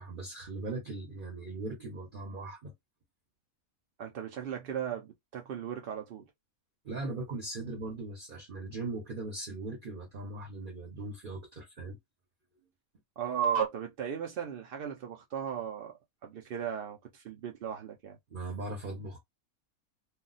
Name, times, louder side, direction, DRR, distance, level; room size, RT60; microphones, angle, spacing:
voice 1, 0.0-2.7 6.8-12.0 18.3-19.2, right 2 dB, 45° right, 0.9 m, -39 dB
voice 2, 4.0-6.2 13.2-15.9 16.2-18.2, right 8 dB, 65° right, 0.5 m, -35 dB
2.4 x 2.2 x 3.8 m
omnidirectional pair, 1.5 m